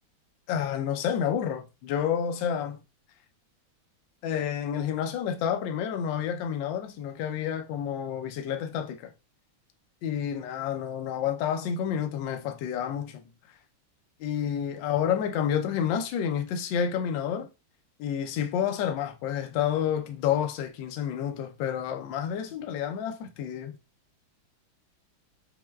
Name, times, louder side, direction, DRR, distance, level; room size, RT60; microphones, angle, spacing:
voice 1, 0.5-2.8 4.2-9.1 10.0-13.2 14.2-17.5 18.0-23.8, left 8 dB, 75° left, 1.2 m, -29 dB
6.3 x 2.2 x 2.2 m
omnidirectional pair, 2.2 m